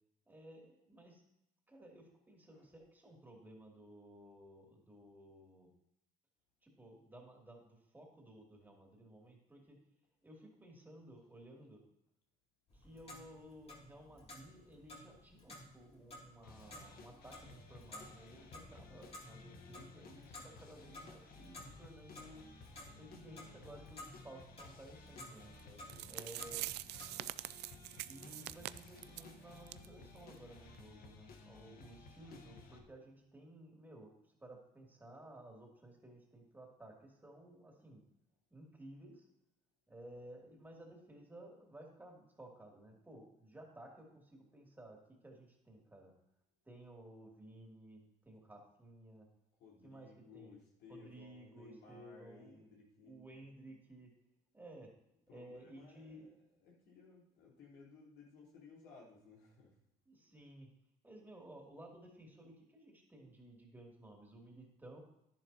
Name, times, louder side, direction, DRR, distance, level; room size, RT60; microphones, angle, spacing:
voice 1, 0.3-1.2 1.7-5.7 6.6-9.8 10.2-11.8 12.7-22.4 23.0-25.5 26.1-26.7 28.0-38.0 38.5-39.3 39.9-46.1 46.6-49.3 49.8-50.5 50.9-52.7 53.0-54.1 54.5-54.9 55.3-56.4 60.0-60.7 61.0-65.0, right 1 dB, 10° right, -1 dB, 2.8 m, -56 dB
Clock, 12.7-27.0, left 1 dB, 35° left, 2.9 m, -55 dB
sound 1, 16.4-32.8, left 3 dB, 60° left, 1.3 m, -57 dB
voice 2, 25.6-26.1 49.6-53.2 55.3-56.3 56.6-59.8, left 4 dB, 85° left, -3 dB, 4.1 m, -59 dB
sound 2, 25.6-25.7 25.9-29.3 29.7-29.9 30.2-30.3 30.7-30.8, right 17 dB, 80° right, 0.4 m, -44 dB
10.5 x 10.5 x 2.9 m, 0.79 s
cardioid pair, 110°, 17 cm